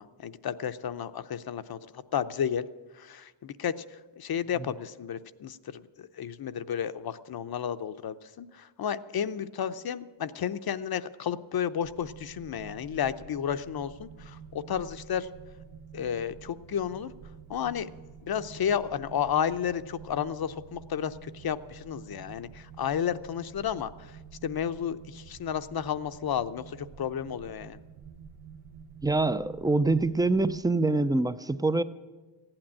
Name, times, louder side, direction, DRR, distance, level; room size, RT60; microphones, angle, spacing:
voice 1, 0.0-2.6 3.0-3.8 4.2-15.3 15.9-17.1 17.5-17.9 18.2-23.9 24.4-27.8, left 8 dB, 50° left, 13 dB, 0.7 m, -32 dB
sound 1, 11.8-30.6, right 6 dB, 75° right, 0.9 m, -49 dB
voice 2, 29.0-31.8, right 2 dB, 10° right, 14 dB, 0.4 m, -25 dB
15.5 x 8.8 x 8.7 m, 1.3 s
cardioid pair, 90°, 49 cm